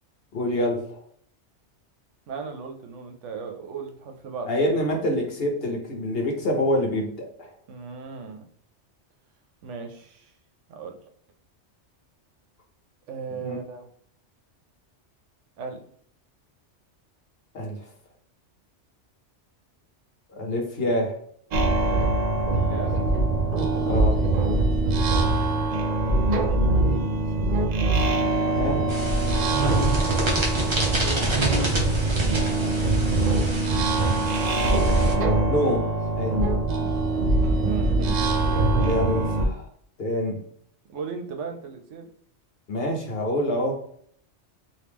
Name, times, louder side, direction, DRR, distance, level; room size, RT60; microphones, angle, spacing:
voice 1, 0.3-1.0 4.5-7.5 13.4-13.6 17.5-17.9 20.3-21.2 23.9-24.2 28.5-28.9 35.5-35.9 36.1-36.5 38.8-39.7 40.0-40.4 42.7-43.8, left 1 dB, 60° left, 2 dB, 1.0 m, -26 dB
voice 2, 2.3-4.5 7.7-8.4 9.6-10.3 10.7-11.0 13.1-13.9 15.6-15.8 22.6-22.9 31.0-31.3 36.8-38.9 40.9-42.1, right 5 dB, 85° right, 4 dB, 1.0 m, -36 dB
sound 1, 21.5-39.5, right 2 dB, 55° right, 0.4 m, -23 dB
sound 2, 28.9-35.1, right 1 dB, 30° right, 0.7 m, -28 dB
3.0 x 2.7 x 3.4 m, 0.62 s
omnidirectional pair, 1.2 m